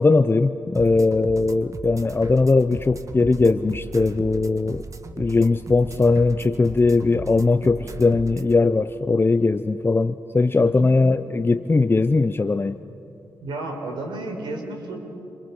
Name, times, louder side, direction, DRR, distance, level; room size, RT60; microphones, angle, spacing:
voice 1, 0.0-4.8 5.2-12.8, left 3 dB, 30° left, 11 dB, 0.8 m, -20 dB
sound 1, 0.7-8.5, right 3 dB, 40° right, 1.7 m, -37 dB
voice 2, 10.6-10.9 13.4-15.0, right 2 dB, 75° right, 3 dB, 4.8 m, -32 dB
29.5 x 28.5 x 5.7 m, 2.8 s
supercardioid pair, 50°, 8 cm